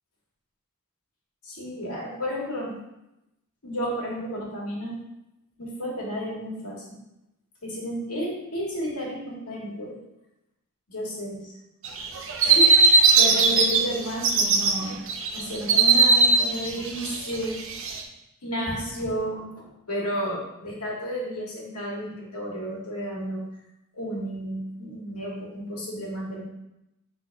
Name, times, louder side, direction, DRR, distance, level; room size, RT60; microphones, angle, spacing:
voice 1, 1.4-2.8 3.6-5.0 5.6-6.8 7.6-10.0 10.9-11.5 12.4-15.0 15.3-17.6 18.4-23.4 24.0-26.4, equal, 90° left, -4 dB, 2.0 m, -32 dB
sound 1, 11.8-13.8 14.1-14.7 15.1-18.0, right 4 dB, 60° right, 0.7 m, -19 dB
6.8 x 4.0 x 3.5 m, 0.90 s
head